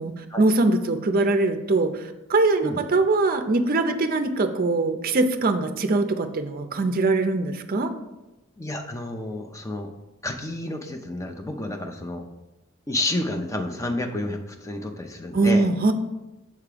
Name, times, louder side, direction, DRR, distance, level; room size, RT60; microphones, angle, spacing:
voice 1, 0.0-7.9 15.3-15.9, right 2 dB, 45° right, 7 dB, 0.5 m, -22 dB
voice 2, 8.6-9.9 10.2-12.2 12.9-15.7, left 1 dB, 15° left, 4 dB, 0.5 m, -30 dB
6.8 x 3.6 x 5.0 m, 1.0 s
head